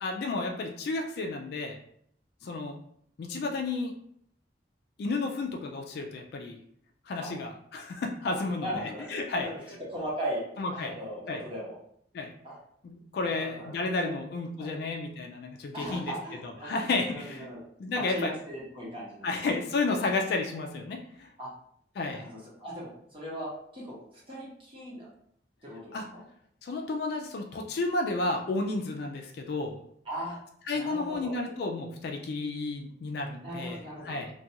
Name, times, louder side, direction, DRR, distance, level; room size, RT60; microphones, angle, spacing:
voice 1, 0.0-1.8 2.4-2.8 3.2-3.9 5.0-6.6 7.1-8.7 9.1-9.5 10.6-10.9 11.3-11.4 12.1-12.3 12.8-16.1 16.6-17.5 17.8-18.3 19.2-21.3 22.0-22.2 25.9-26.1 26.6-29.7 30.7-33.8 34.0-34.3, left 3 dB, 60° left, 3 dB, 0.3 m, -32 dB
voice 2, 8.2-10.4 10.7-11.8 12.4-12.6 13.2-13.7 14.0-14.1 14.6-14.7 15.7-16.8 17.1-17.7 17.9-19.3 21.4-21.5 22.1-25.1 25.6-25.8 26.1-26.2 30.0-30.4 30.7-31.3 33.4-34.2, equal, 30° right, -6 dB, 1.0 m, -38 dB
2.4 x 2.2 x 2.8 m, 0.67 s
head